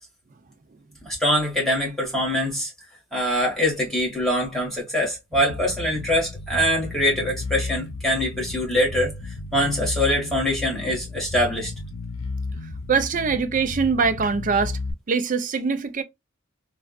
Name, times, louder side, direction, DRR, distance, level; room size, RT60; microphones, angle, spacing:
voice 1, 1.0-2.7 3.1-11.7, equal, ahead, 1.5 m, -23 dB
Bass guitar, 5.3-14.9, left 3 dB, 70° left, 0.7 m, -33 dB
voice 2, 12.9-14.8 15.1-16.0, right 5 dB, 40° right, 0.4 m, -23 dB
3.4 x 2.3 x 2.3 m
head